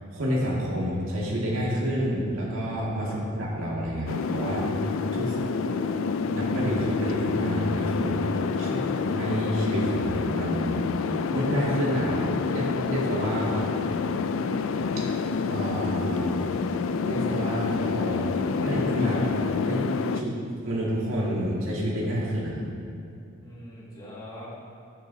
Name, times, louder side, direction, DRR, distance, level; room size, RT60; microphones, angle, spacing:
voice 1, 0.1-5.4 5.9-10.8 11.3-14.0 15.0-15.1 15.5-16.5 17.0-19.2 19.7-19.9 20.1-20.4 20.6-22.6, equal, 85° right, -5 dB, 2.1 m, -29 dB
sound 1, 4.1-20.2, left 5 dB, 70° left, 0.4 m, -28 dB
voice 2, 5.2-6.1 8.6-8.8 13.4-13.6 19.1-19.3 23.4-24.5, left 1 dB, 20° left, -7 dB, 2.0 m, -44 dB
14.0 x 6.9 x 2.8 m, 2.5 s
head